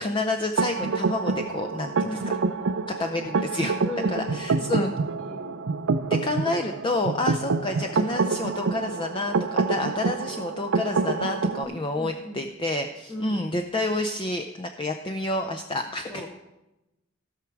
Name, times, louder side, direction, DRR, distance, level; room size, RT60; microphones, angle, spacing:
voice 1, 0.0-2.4 3.0-3.7 4.1-4.9 6.1-16.2, left 2 dB, 25° left, 5 dB, 0.5 m, -29 dB
sound 1, 0.6-11.6, right 4 dB, 85° right, 0.5 m, -27 dB
voice 2, 2.0-2.3 3.8-4.9 5.2-5.6 11.7-12.4 13.1-13.4 16.1-16.3, left 1 dB, 10° left, -3 dB, 1.2 m, -37 dB
17.0 x 6.1 x 4.6 m, 0.98 s
head